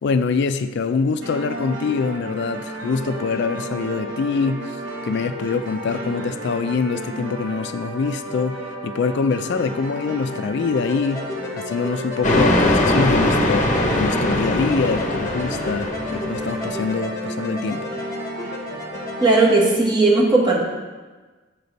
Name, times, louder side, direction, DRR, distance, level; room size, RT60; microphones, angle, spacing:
voice 1, 0.0-11.3 11.5-17.9, left 4 dB, 60° left, 10 dB, 0.3 m, -24 dB
sound 1, 1.2-19.6, equal, 65° right, 1.5 m, -33 dB
sound 2, 10.7-19.5, left 2 dB, 15° left, 1.1 m, -34 dB
sound 3, 12.2-16.7, left 1 dB, 40° left, 0.8 m, -21 dB
voice 2, 19.2-20.6, right 2 dB, 20° right, -2 dB, 1.4 m, -16 dB
7.7 x 6.6 x 4.0 m, 1.3 s
head